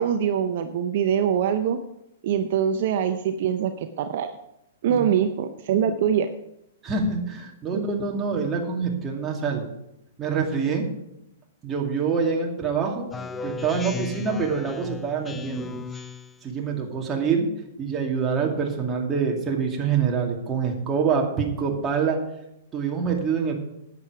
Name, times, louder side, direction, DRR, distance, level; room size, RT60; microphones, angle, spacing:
voice 1, 0.0-1.8 2.2-4.3 4.8-6.3 7.7-7.8, right 8 dB, 55° right, 8 dB, 0.7 m, -23 dB
voice 2, 6.8-9.6 10.2-10.9 11.6-13.1 13.4-15.7 16.4-17.5 17.8-22.2 22.7-23.5, right 5 dB, 20° right, 0 dB, 2.3 m, -25 dB
Speech synthesizer, 13.1-16.4, left 5 dB, 15° left, 0.7 m, -35 dB
10.5 x 8.5 x 4.8 m, 0.84 s
hypercardioid pair, 120°, 0 cm